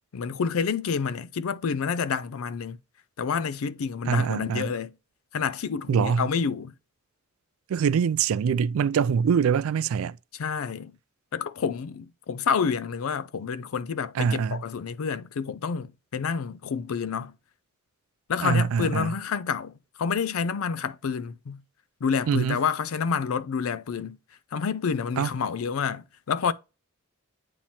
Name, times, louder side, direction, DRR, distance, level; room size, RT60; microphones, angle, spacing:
voice 1, 0.1-2.8 3.2-4.9 5.3-6.7 10.3-11.0 11.3-17.4 18.3-21.6 22.0-24.2 24.5-26.5, left 6 dB, 90° left, 0.4 m, -28 dB
voice 2, 4.1-4.7 5.9-6.3 7.7-10.2 14.2-14.6 18.4-19.1 22.3-22.6 25.2-25.3, right 6 dB, 80° right, 0.3 m, -24 dB
8.8 x 3.0 x 4.1 m
head